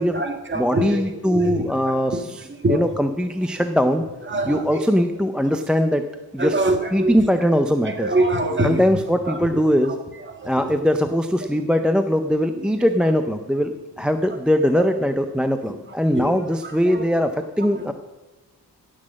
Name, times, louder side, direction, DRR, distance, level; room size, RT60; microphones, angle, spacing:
voice 1, 0.0-2.2 2.4-3.0 4.3-4.8 6.4-7.5 7.8-9.6 9.9-10.0 10.3-10.7 12.5-12.7 14.7-14.8 15.9-16.4 16.6-17.1 17.6-17.9, right 1 dB, 30° right, 5 dB, 1.7 m, -25 dB
voice 2, 0.6-2.2 2.7-4.0 4.5-6.1 6.3-6.6 6.9-8.1 8.6-9.9 10.4-17.3 17.6-17.9, equal, ahead, 7 dB, 0.5 m, -21 dB
16.5 x 6.4 x 7.4 m, 1.2 s
wide cardioid pair, 145°, 39 cm